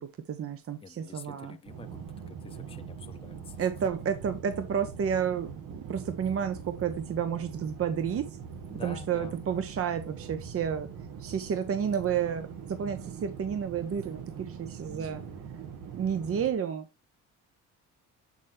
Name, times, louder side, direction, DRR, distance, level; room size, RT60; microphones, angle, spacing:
voice 1, 0.0-1.6 3.6-8.3 8.8-10.9 11.2-15.2 15.9-16.8, right 8 dB, 50° right, 0.9 m, -31 dB
voice 2, 0.8-3.6 8.7-9.3 14.9-15.5, left 4 dB, 20° left, 0.7 m, -48 dB
sound 1, 1.7-16.5, right 7 dB, 80° right, 1.4 m, -42 dB
8.3 x 4.3 x 3.3 m
cardioid pair, 90°, 30 cm